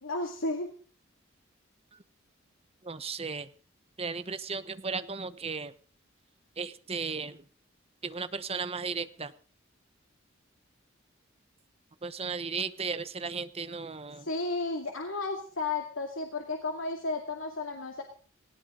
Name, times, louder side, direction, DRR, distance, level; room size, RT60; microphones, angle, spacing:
voice 1, 0.0-0.7 14.2-18.0, left 3 dB, 80° left, 2 dB, 2.4 m, -33 dB
voice 2, 2.8-3.5 4.0-5.7 6.6-7.4 8.0-9.3 12.0-14.3, right 5 dB, 30° right, 12 dB, 1.0 m, -35 dB
19.0 x 17.5 x 3.9 m, 0.43 s
head